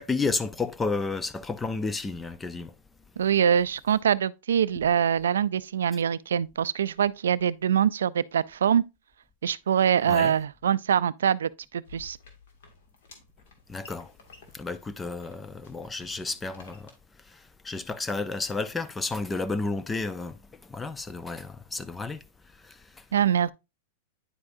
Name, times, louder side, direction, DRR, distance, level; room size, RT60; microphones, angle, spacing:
voice 1, 0.0-2.7 10.1-10.3 13.7-14.1 14.5-16.9 17.3-22.2 22.6-23.0, left 3 dB, 15° left, 0.5 m, -32 dB
voice 2, 3.2-8.8 9.4-12.2 23.1-23.5, right 8 dB, 85° right, 0.3 m, -24 dB
sound 1, 11.8-16.9, left 4 dB, 70° left, 2.1 m, -53 dB
9.7 x 4.8 x 2.6 m
hypercardioid pair, 115°, 0 cm